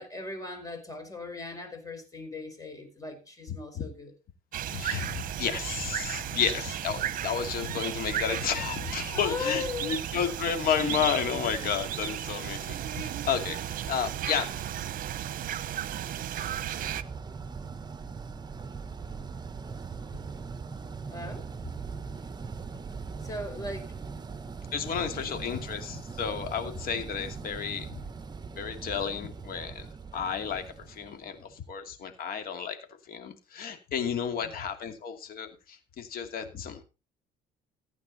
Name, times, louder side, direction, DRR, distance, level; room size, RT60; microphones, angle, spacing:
voice 1, 0.0-4.1 6.4-6.7 9.1-10.0 21.1-21.5 23.1-24.2 25.1-25.7 34.3-34.5, left 3 dB, 20° left, 4.9 m, -39 dB
voice 2, 3.5-3.9 4.7-14.5 24.7-28.0 28.6-29.9 30.1-32.8 33.1-36.8, left 7 dB, 60° left, 2.6 m, -32 dB
sound 1, 4.5-17.0, right 11 dB, 55° right, 1.0 m, -34 dB
sound 2, 16.6-31.6, right 5 dB, 25° right, 1.2 m, -40 dB
15.5 x 9.2 x 4.2 m
cardioid pair, 110°, 17 cm